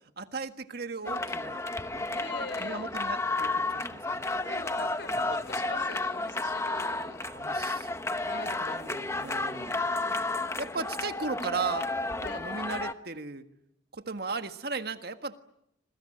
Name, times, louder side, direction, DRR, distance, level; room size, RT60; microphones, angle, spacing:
voice 1, 0.2-1.6 1.9-2.0 2.6-4.2 5.2-5.3 7.2-9.8 10.6-11.9 12.2-13.4 13.9-15.4, right 4 dB, 55° right, 8 dB, 1.6 m, -37 dB
sound 1, 1.1-12.9, left 2 dB, 15° left, 1.0 m, -32 dB
voice 2, 2.2-2.9 4.4-7.2 8.2-9.8 12.2-12.4, left 3 dB, 65° left, 14 dB, 3.5 m, -43 dB
27.0 x 23.0 x 8.9 m, 0.79 s
head